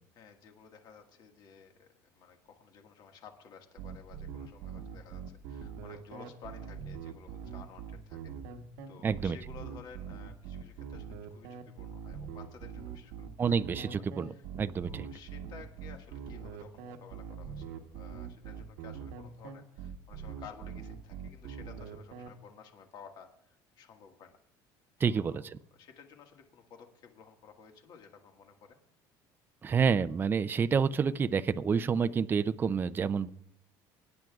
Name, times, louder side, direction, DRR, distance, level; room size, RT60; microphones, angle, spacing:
voice 1, 0.1-8.6 8.9-13.3 13.7-14.4 14.8-24.4 25.0-28.8, left 6 dB, 55° left, 4 dB, 1.8 m, -54 dB
sound 1, 3.8-22.3, right 7 dB, 90° right, 1.2 m, -43 dB
voice 2, 9.0-9.4 13.4-15.1 25.0-25.6 29.6-33.3, right 6 dB, 25° right, 12 dB, 0.4 m, -29 dB
25.5 x 10.5 x 2.4 m, 0.72 s
cardioid pair, 125°, 9 cm